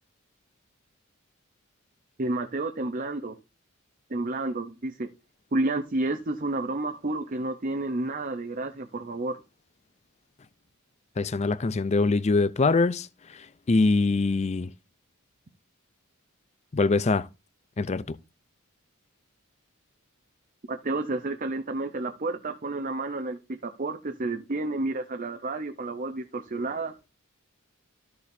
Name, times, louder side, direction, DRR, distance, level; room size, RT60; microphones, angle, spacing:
voice 1, 2.2-3.4 4.1-5.1 5.5-9.4 20.7-26.9, right 2 dB, 40° right, 0.7 m, -30 dB
voice 2, 11.2-13.1 13.7-14.7 16.7-17.3 17.8-18.2, left 3 dB, 30° left, 0.4 m, -23 dB
13.5 x 6.7 x 2.7 m
head